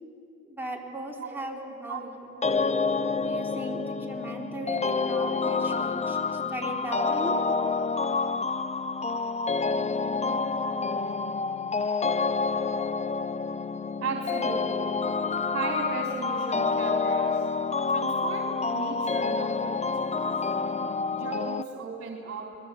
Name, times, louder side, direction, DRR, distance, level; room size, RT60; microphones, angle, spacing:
voice 1, 0.4-2.4 3.1-7.3, right 1 dB, 5° right, -3 dB, 4.3 m, -37 dB
voice 2, 1.2-1.6 1.9-2.1 2.3-2.6 5.6-5.8 7.1-7.6 14.0-15.0 15.5-17.5 17.9-20.2 21.1-22.5, right 4 dB, 50° right, -1 dB, 3.8 m, -36 dB
sound 1, 2.4-21.6, left 4 dB, 20° left, 0.8 m, -28 dB
29.5 x 21.0 x 8.5 m, 2.5 s
cardioid pair, 90°, 30 cm